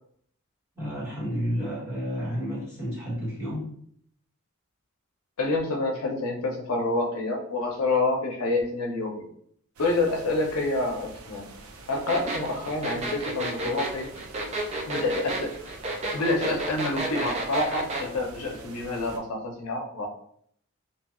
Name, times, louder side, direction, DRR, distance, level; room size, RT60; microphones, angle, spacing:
voice 1, 0.7-3.8, equal, 10° right, -8 dB, 1.1 m, -31 dB
voice 2, 5.4-9.3 9.8-11.4 11.9-14.1 14.9-15.5 16.1-20.1, left 2 dB, 80° left, 1 dB, 0.6 m, -27 dB
sound 1, 9.8-19.2, right 3 dB, 80° right, 0.5 m, -46 dB
sound 2, 12.1-18.1, right 2 dB, 30° right, 0.3 m, -31 dB
2.9 x 2.2 x 2.9 m, 0.65 s
head